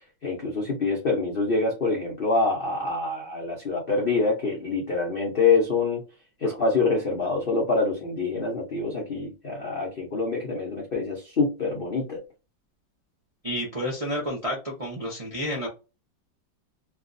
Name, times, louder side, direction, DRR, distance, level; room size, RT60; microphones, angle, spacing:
voice 1, 0.2-6.0 6.4-12.2, left 3 dB, 80° left, 0.5 m, -25 dB
voice 2, 13.4-15.7, equal, 50° right, 0.4 m, -30 dB
3.4 x 2.3 x 2.5 m
omnidirectional pair, 2.1 m